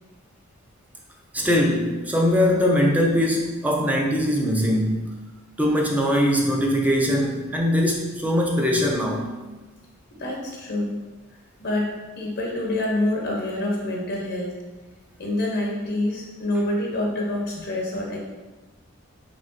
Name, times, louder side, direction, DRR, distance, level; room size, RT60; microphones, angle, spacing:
voice 1, 1.3-5.1 5.6-9.3, equal, 10° right, -1 dB, 0.4 m, -21 dB
voice 2, 10.2-11.0 11.6-11.9 12.1-14.6 15.2-18.2, left 1 dB, 55° left, -2 dB, 0.7 m, -26 dB
4.6 x 3.3 x 2.5 m, 1.2 s
head